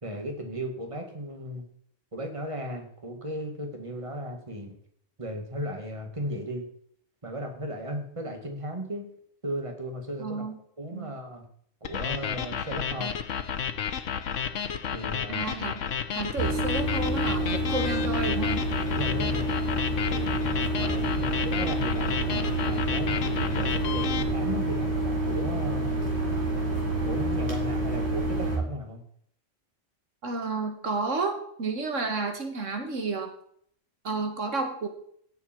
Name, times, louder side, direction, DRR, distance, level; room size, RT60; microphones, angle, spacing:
voice 1, 0.0-1.7 2.1-4.7 5.2-6.7 7.2-9.1 9.4-10.4 10.8-11.4 11.8-13.2 14.9-15.5 18.9-19.5 20.1-25.9 27.0-29.0, equal, 25° right, 3 dB, 2.3 m, -36 dB
voice 2, 10.2-10.6 10.9-11.2 15.3-15.8 16.1-18.6 30.2-33.3 34.0-34.9, right 3 dB, 80° right, 5 dB, 1.9 m, -31 dB
sound 1, 11.8-24.2, left 7 dB, 85° left, 1.2 m, -32 dB
sound 2, 16.4-28.6, right 1 dB, 60° right, 3.9 m, -28 dB
17.0 x 7.3 x 4.6 m, 0.65 s
omnidirectional pair, 1.3 m